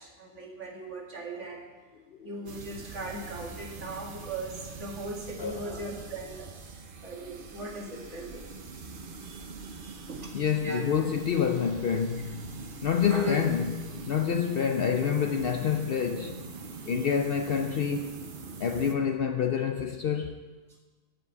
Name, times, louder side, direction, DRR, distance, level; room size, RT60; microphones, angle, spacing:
voice 1, 0.0-1.6 2.2-6.5 7.0-8.4 9.2-10.3 10.6-10.8 13.0-13.5, right 1 dB, 65° right, 2.2 m, -38 dB
sound 1, 2.5-18.9, right 4 dB, 45° right, 0.9 m, -43 dB
voice 2, 10.3-12.4 12.8-16.4 16.9-18.3 18.6-20.4, left 7 dB, 60° left, 0.7 m, -27 dB
9.0 x 7.3 x 8.3 m
omnidirectional pair, 1.3 m